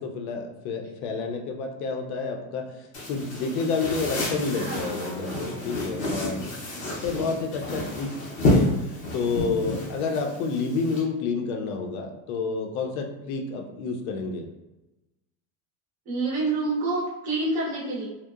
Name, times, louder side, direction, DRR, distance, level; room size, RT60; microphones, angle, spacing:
voice 1, 0.0-2.6 3.1-6.4 7.0-8.1 8.5-14.4, left 4 dB, 85° left, 3 dB, 0.6 m, -29 dB
sound 1, 2.9-11.0, left 1 dB, 30° left, 0.5 m, -29 dB
voice 2, 4.5-6.3 16.1-18.1, right 2 dB, 20° right, -6 dB, 0.4 m, -29 dB
2.8 x 2.1 x 2.3 m, 1.0 s
cardioid pair, 175°, 42 cm